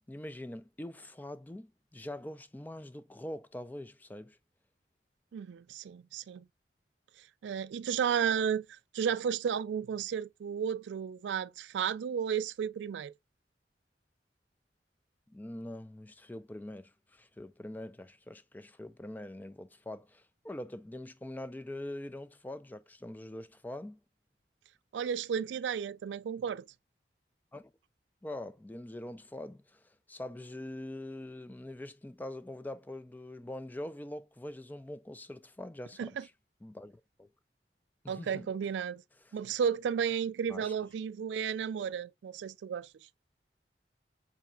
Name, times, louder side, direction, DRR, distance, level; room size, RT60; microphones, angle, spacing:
voice 1, 0.1-4.4 15.3-24.0 27.5-27.7 28.2-36.3 36.6-37.3 38.0-38.5 39.3-39.4 40.5-40.9, left 1 dB, 10° left, 0.3 m, -44 dB
voice 2, 5.3-6.5 7.2-13.1 24.9-26.7 36.0-36.3 38.1-39.0 39.3-42.9, right 7 dB, 85° right, 0.3 m, -33 dB
5.7 x 3.8 x 2.3 m
head